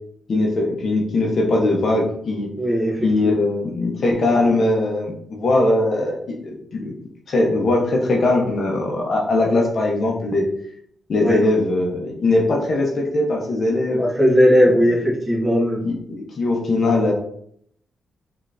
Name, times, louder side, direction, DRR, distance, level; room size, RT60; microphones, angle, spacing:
voice 1, 0.3-2.5 3.0-6.9 7.3-10.5 11.1-14.0 14.6-15.0 15.8-17.1, left 2 dB, 55° left, 0 dB, 0.8 m, -20 dB
voice 2, 2.6-3.3 11.2-11.4 14.0-15.8, equal, 15° right, -4 dB, 1.3 m, -17 dB
3.7 x 3.3 x 2.5 m, 0.66 s
cardioid pair, 110°, 0 cm